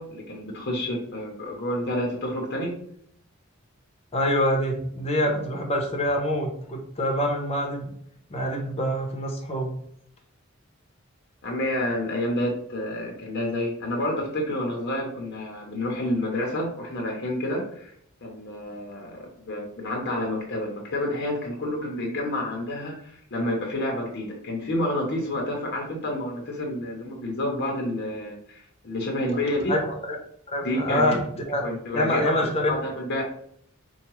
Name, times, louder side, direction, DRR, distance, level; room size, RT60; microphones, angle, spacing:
voice 1, 0.0-2.8 5.2-5.3 11.4-17.9 18.2-29.7 30.6-31.2 31.6-33.2, left 1 dB, 55° left, -1 dB, 0.8 m, -29 dB
voice 2, 4.1-7.9 8.3-9.8 29.7-30.2 30.5-31.6 31.9-32.7, left 1 dB, 30° left, 1 dB, 0.8 m, -26 dB
4.6 x 2.3 x 3.0 m, 0.68 s
head